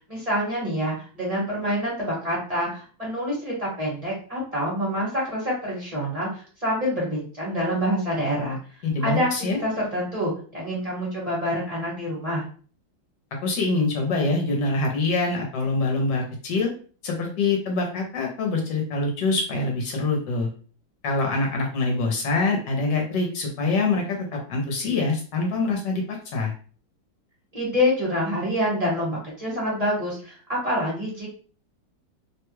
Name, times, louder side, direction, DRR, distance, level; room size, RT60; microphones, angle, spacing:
voice 1, 0.1-8.6 9.0-9.3 9.6-12.4 27.5-31.3, equal, 25° right, -6 dB, 1.0 m, -26 dB
voice 2, 8.8-9.6 13.4-16.7 17.0-20.5 21.0-26.5, left 3 dB, 70° left, 1 dB, 1.2 m, -25 dB
3.2 x 2.2 x 3.0 m, 0.41 s
omnidirectional pair, 2.1 m